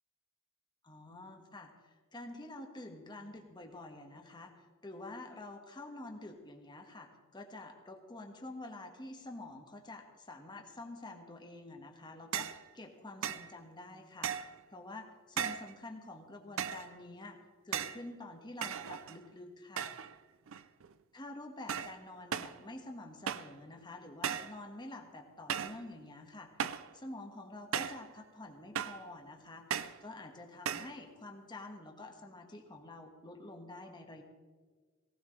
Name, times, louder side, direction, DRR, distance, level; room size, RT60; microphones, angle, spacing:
voice 1, 0.8-14.3 14.7-19.9 21.1-34.2, left 2 dB, 20° left, 3 dB, 1.6 m, -48 dB
sound 1, 12.3-12.6 13.2-13.5 14.2-14.6 15.4-15.7 16.6-16.9 17.7-18.0 18.6-19.3 19.8-20.2 20.5-20.9 21.7-22.0 22.3-22.6 23.3-23.6 24.2-24.6 25.5-25.8 26.6-26.9 27.7-28.1 28.8-29.1 29.7-30.0 30.7-31.0, right 8 dB, 70° right, 0.5 m, -37 dB
18.0 x 17.5 x 3.3 m, 1.5 s
head